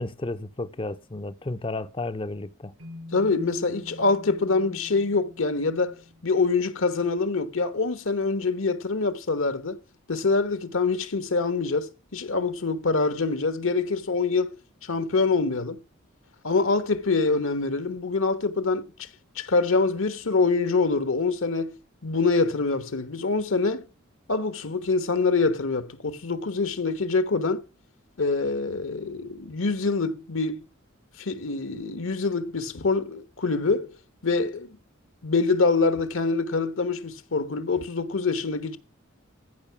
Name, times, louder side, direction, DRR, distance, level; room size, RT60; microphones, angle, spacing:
voice 1, 0.0-2.7, left 2 dB, 25° left, 0.6 m, -32 dB
sound 1, 2.8-7.1, left 2 dB, 80° right, 5.9 m, -46 dB
voice 2, 3.1-9.8 10.1-14.5 14.8-15.8 16.4-19.1 19.3-21.8 22.0-23.8 24.3-27.6 28.2-30.6 31.2-33.9 34.2-34.8 35.2-38.8, left 3 dB, 70° left, 1.2 m, -25 dB
14.0 x 5.4 x 7.0 m
head